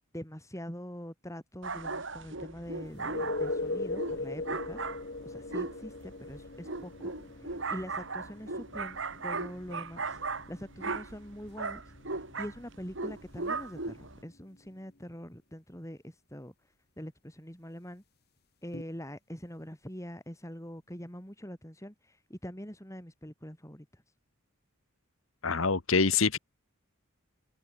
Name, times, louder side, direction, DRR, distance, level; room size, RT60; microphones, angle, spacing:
voice 1, 0.1-4.8 5.2-7.1 7.7-10.2 10.5-11.8 12.4-16.5 17.0-18.0 18.6-24.0, equal, 15° left, 7.4 m, -44 dB
sound 1, 1.6-14.2, right 3 dB, 60° right, 2.9 m, -38 dB
sound 2, 2.9-14.5 18.7-18.8, left 2 dB, 50° left, 1.6 m, -40 dB
voice 2, 25.4-26.4, left 4 dB, 65° left, 1.4 m, -25 dB
head